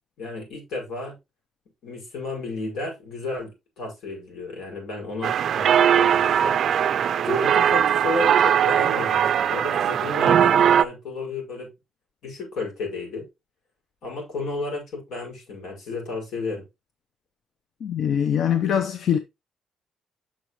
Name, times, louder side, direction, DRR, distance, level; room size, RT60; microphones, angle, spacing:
voice 1, 0.2-1.2 1.8-6.6 7.2-11.7 12.2-13.3 14.0-16.6, left 3 dB, 80° left, 5.2 m, -32 dB
sound 1, 5.2-10.8, right 9 dB, 55° right, 0.4 m, -20 dB
voice 2, 17.8-19.2, left 9 dB, 60° left, 0.6 m, -23 dB
8.4 x 6.2 x 3.0 m
cardioid pair, 155°, 0 cm